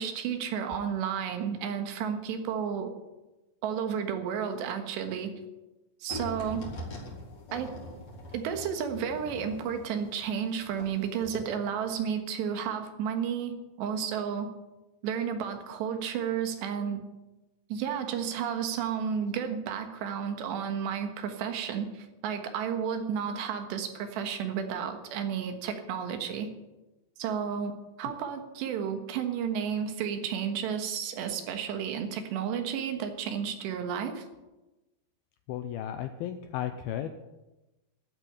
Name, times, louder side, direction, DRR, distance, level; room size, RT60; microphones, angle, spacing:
voice 1, 0.0-2.9 3.6-5.3 6.0-6.7 7.5-7.8 8.3-14.5 15.0-17.0 17.7-26.5 27.2-34.3, right 7 dB, 85° right, 6 dB, 3.6 m, -32 dB
sound 1, 6.1-10.9 11.2-11.4, left 1 dB, 45° left, 4.3 m, -42 dB
voice 2, 35.5-37.1, left 11 dB, 80° left, 8 dB, 2.3 m, -34 dB
12.5 x 8.7 x 10.0 m, 1.0 s
omnidirectional pair, 4.9 m